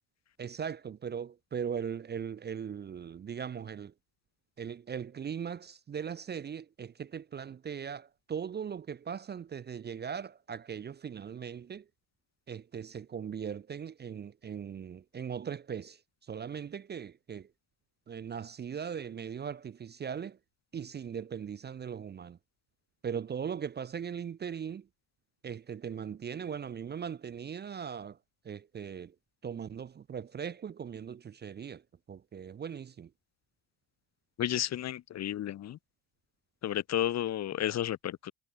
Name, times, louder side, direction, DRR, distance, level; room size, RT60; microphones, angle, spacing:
voice 1, 0.4-3.9 4.6-11.9 12.5-17.5 18.1-20.4 20.7-22.4 23.0-24.9 25.4-28.2 28.4-29.2 29.4-33.1, right 7 dB, 25° right, 0.5 m, -39 dB
voice 2, 34.4-35.8 36.6-38.3, left 12 dB, 45° left, 0.7 m, -32 dB
cardioid pair, 115°, 39 cm